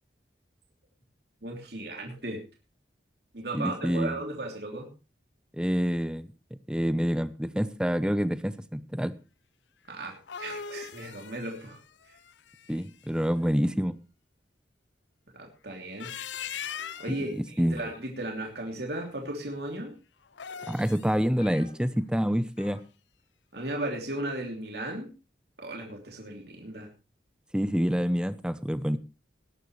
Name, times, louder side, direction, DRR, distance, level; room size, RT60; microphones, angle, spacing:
voice 1, 1.4-2.4 3.3-4.9 9.9-11.8 15.3-16.1 17.0-19.9 23.5-25.1 25.6-26.9, right 1 dB, 65° right, 1 dB, 3.1 m, -36 dB
voice 2, 3.5-4.2 5.6-6.3 6.7-9.1 12.7-14.0 17.1-17.8 20.7-22.8 27.5-29.0, equal, 5° right, 14 dB, 0.7 m, -27 dB
sound 1, 10.0-13.1 15.8-17.3 20.2-21.1, left 7 dB, 85° left, 0.6 m, -40 dB
sound 2, 16.3-17.0 17.8-18.7 19.0-19.3 20.2-20.3 20.8-20.9 21.1-21.2 21.4-22.0 22.6-22.9 23.2-23.3, left 4 dB, 50° left, 7.0 m, -52 dB
19.5 x 11.0 x 3.2 m, 0.30 s
head